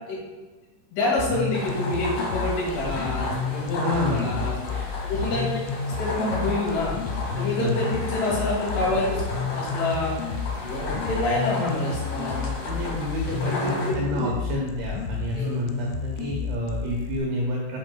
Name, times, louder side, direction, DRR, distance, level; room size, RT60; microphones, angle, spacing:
voice 1, 0.9-5.6 5.9-6.9 7.4-9.2 9.5-12.5 12.8-12.9 13.3-14.3 15.3-15.6 16.7-16.8, left 2 dB, 70° left, -5 dB, 4.4 m, -28 dB
sound 1, 1.2-17.2, left 5 dB, 90° left, 3.2 m, -31 dB
sound 2, 1.5-13.9, left 2 dB, 55° left, 1.9 m, -34 dB
voice 2, 3.8-4.4 7.6-7.8 12.6-17.8, equal, 75° right, -3 dB, 2.4 m, -29 dB
9.0 x 8.1 x 2.2 m, 1.2 s
omnidirectional pair, 5.7 m